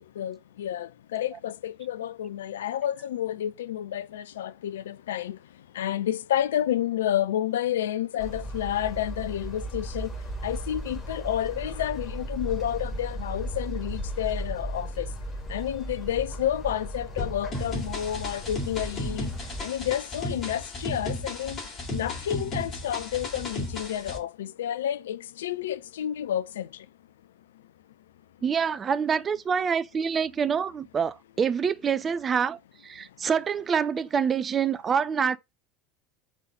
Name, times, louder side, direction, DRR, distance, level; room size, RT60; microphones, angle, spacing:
voice 1, 0.2-5.4 5.7-10.1 10.4-15.1 15.5-19.3 19.6-21.6 21.9-26.7, left 11 dB, 65° left, 0.4 m, -30 dB
sound 1, 8.2-19.6, right 1 dB, 20° left, 2.6 m, -36 dB
sound 2, 17.5-24.2, left 1 dB, 35° left, 2.8 m, -35 dB
voice 2, 28.4-35.4, right 7 dB, 30° right, 0.5 m, -26 dB
5.1 x 3.9 x 5.3 m
figure-of-eight pair, 70°, 0 cm